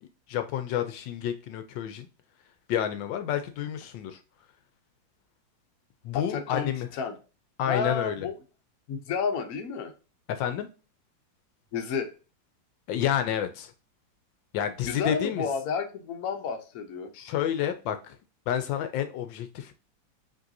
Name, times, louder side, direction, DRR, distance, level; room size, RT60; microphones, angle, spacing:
voice 1, 0.0-2.1 2.7-4.2 6.0-6.9 7.6-8.3 10.3-10.7 12.9-13.7 14.5-15.5 17.1-18.2 18.5-19.7, left 10 dB, 80° left, 1.3 m, -29 dB
voice 2, 6.1-7.1 7.7-8.3 8.9-9.9 11.7-12.1 14.8-17.1, left 6 dB, 60° left, 1.1 m, -31 dB
5.3 x 3.1 x 2.6 m
omnidirectional pair, 2.0 m